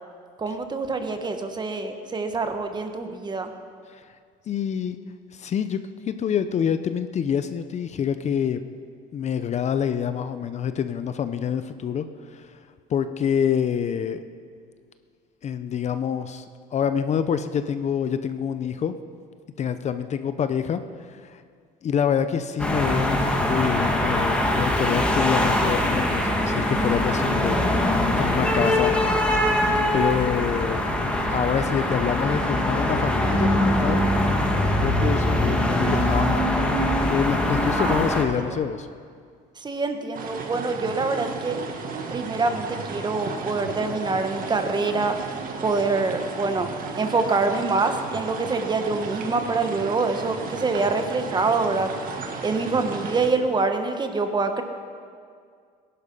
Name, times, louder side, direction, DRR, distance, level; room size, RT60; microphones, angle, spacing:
voice 1, 0.4-3.5 37.8-38.6 39.6-41.6 42.1-45.2 45.6-46.7 47.0-51.9 52.4-54.6, right 3 dB, 25° right, 6 dB, 1.5 m, -25 dB
voice 2, 4.5-5.0 5.3-5.8 6.0-8.6 9.1-12.6 12.9-14.2 15.4-16.4 16.7-19.0 19.6-20.8 21.1-21.4 21.8-27.8 28.2-29.0 29.4-30.8 31.3-34.0 34.8-36.6 37.1-38.9, left 8 dB, 40° left, 10 dB, 0.7 m, -26 dB
sound 1, 22.6-38.2, left 1 dB, 5° left, 1.9 m, -22 dB
sound 2, 40.1-53.3, right 4 dB, 55° right, 1.9 m, -34 dB
18.0 x 11.0 x 5.6 m, 2.1 s
cardioid pair, 110°, 18 cm